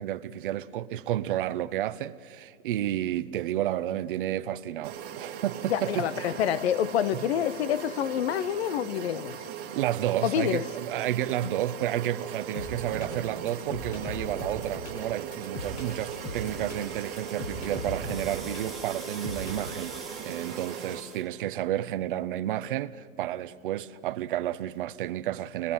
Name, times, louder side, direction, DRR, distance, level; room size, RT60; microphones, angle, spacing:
voice 1, 0.0-6.4 9.7-20.0 20.2-25.7, right 12 dB, 40° right, 0.7 m, -31 dB
sound 1, 4.8-21.0, right 8 dB, 25° right, 1.9 m, -39 dB
voice 2, 5.6-9.4 10.2-10.7, left 10 dB, 50° left, 0.7 m, -27 dB
sound 2, 12.5-19.9, left 1 dB, 35° left, 6.6 m, -39 dB
sound 3, 15.6-21.3, right 2 dB, ahead, 0.9 m, -46 dB
24.5 x 21.0 x 5.5 m
hypercardioid pair, 150°, 41 cm